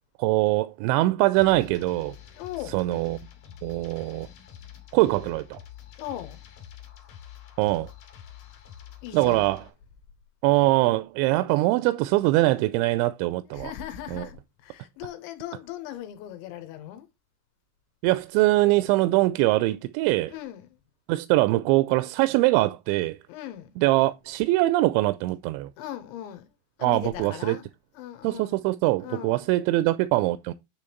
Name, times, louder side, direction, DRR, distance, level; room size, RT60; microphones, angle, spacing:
voice 1, 0.2-2.2 2.7-3.2 3.6-4.3 4.9-5.6 7.6-7.9 9.1-9.6 10.4-13.7 14.1-14.3 18.0-20.3 21.1-23.2 23.8-25.7 26.8-27.6 28.2-30.5, right 18 dB, 85° right, 2.8 m, -23 dB
sound 1, 1.4-9.7, left 10 dB, 55° left, 3.0 m, -46 dB
voice 2, 2.4-2.8 6.0-6.4 9.0-9.5 13.5-17.1 20.3-20.7 23.3-23.7 25.8-26.5 26.8-27.7 27.9-28.6 29.0-29.5, left 12 dB, 85° left, 3.2 m, -38 dB
9.8 x 3.5 x 4.4 m
omnidirectional pair, 5.4 m